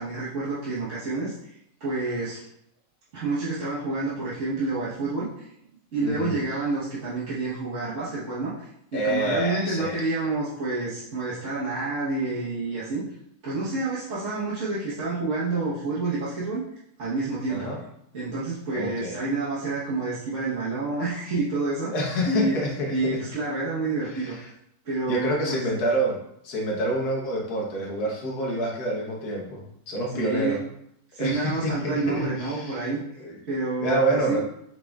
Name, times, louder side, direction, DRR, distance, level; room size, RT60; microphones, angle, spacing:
voice 1, 0.0-1.3 1.8-2.4 3.1-5.5 5.9-13.0 13.4-16.6 17.0-17.7 18.1-21.9 22.3-22.6 22.9-24.3 24.8-25.6 30.1-30.6 31.1-34.4, right 3 dB, 55° right, -12 dB, 1.5 m, -28 dB
voice 2, 6.0-6.3 8.9-10.0 17.5-17.8 18.7-19.2 21.9-23.2 24.1-24.5 25.0-30.6 31.2-32.9 33.2-33.4 33.8-34.4, right 1 dB, 85° left, -2 dB, 1.6 m, -27 dB
4.9 x 4.6 x 2.3 m, 0.74 s
omnidirectional pair, 1.6 m